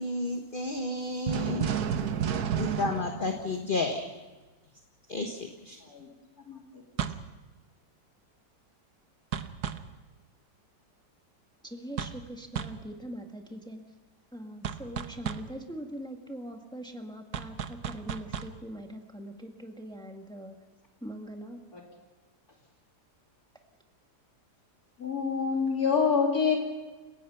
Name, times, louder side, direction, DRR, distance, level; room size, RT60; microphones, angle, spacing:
voice 1, 0.0-1.7 2.6-4.0 5.1-5.8, left 2 dB, 30° left, 4 dB, 1.5 m, -31 dB
sound 1, 1.3-4.1 7.0-7.3 9.3-9.9 12.0-12.3 12.6-12.9 14.6-15.6 17.3-18.6, right 8 dB, 70° right, 1.4 m, -32 dB
voice 2, 11.6-13.8 14.3-20.5 21.0-21.6, equal, 5° left, 3 dB, 1.8 m, -42 dB
voice 3, 25.0-26.6, left 6 dB, 60° left, 0 dB, 3.3 m, -26 dB
30.0 x 16.5 x 5.7 m, 1.2 s
omnidirectional pair, 1.8 m